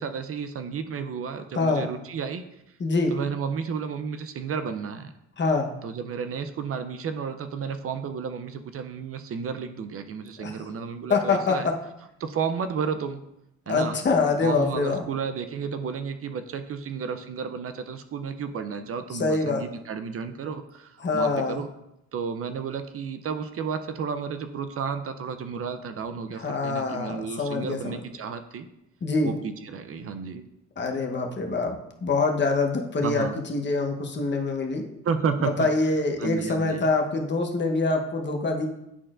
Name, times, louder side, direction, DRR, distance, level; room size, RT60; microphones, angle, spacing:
voice 1, 0.0-2.4 3.1-5.1 5.8-11.7 12.2-13.2 13.7-14.0 14.4-21.7 22.1-28.7 29.2-30.4 33.0-33.4 35.0-35.7 36.2-36.9, right 6 dB, 50° right, 9 dB, 0.5 m, -32 dB
voice 2, 1.5-1.9 2.8-3.1 5.4-5.7 10.4-10.5 11.1-11.7 13.7-15.0 19.1-19.6 21.0-21.6 26.4-28.0 29.0-29.3 30.8-31.8 32.0-34.8 35.6-38.7, left 3 dB, 35° left, 2 dB, 1.0 m, -25 dB
10.0 x 4.3 x 2.5 m, 0.85 s
cardioid pair, 90°, 30 cm